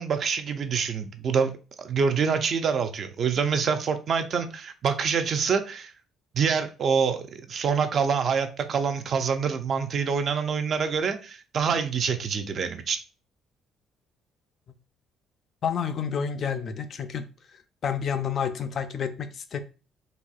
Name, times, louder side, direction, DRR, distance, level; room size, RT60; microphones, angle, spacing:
voice 1, 0.0-1.5 1.8-5.9 6.3-13.0, right 6 dB, 40° right, 0.4 m, -26 dB
voice 2, 15.6-17.3 17.8-19.6, left 7 dB, 40° left, 0.3 m, -29 dB
4.1 x 2.6 x 2.3 m
cardioid pair, 155°, 0 cm